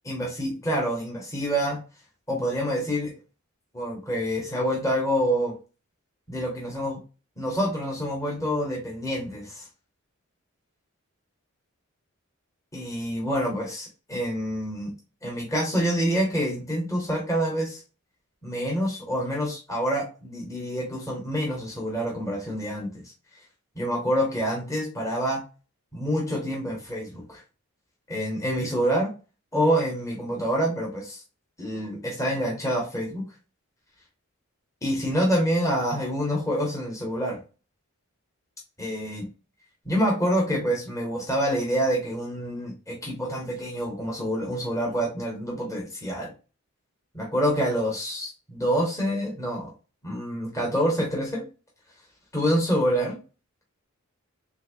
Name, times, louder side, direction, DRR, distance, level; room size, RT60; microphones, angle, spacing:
voice 1, 0.0-1.8 2.3-3.1 3.7-5.5 6.3-7.0 7.4-9.7 12.7-14.9 15.2-17.8 18.4-23.0 23.7-25.4 25.9-27.4 28.1-29.1 29.5-31.2 31.6-33.2 34.8-37.4 38.8-39.2 39.8-46.3 47.1-49.7 50.0-51.5 52.3-53.2, equal, 15° left, -1 dB, 1.0 m, -27 dB
3.5 x 2.8 x 2.7 m, 0.32 s
head